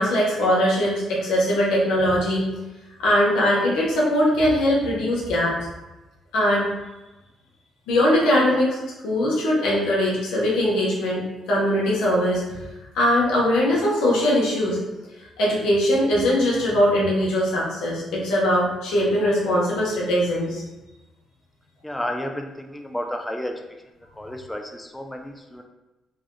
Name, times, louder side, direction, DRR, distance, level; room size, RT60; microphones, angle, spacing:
voice 1, 0.0-2.5 3.0-5.6 6.3-6.7 7.9-8.8 9.0-11.2 11.5-12.6 12.9-14.8 15.4-20.6, equal, 90° left, -4 dB, 1.1 m, -21 dB
voice 2, 21.8-23.5 24.2-25.6, left 1 dB, 5° left, 3 dB, 0.4 m, -31 dB
3.4 x 2.3 x 3.7 m, 1.1 s
cardioid pair, 90°, 0 cm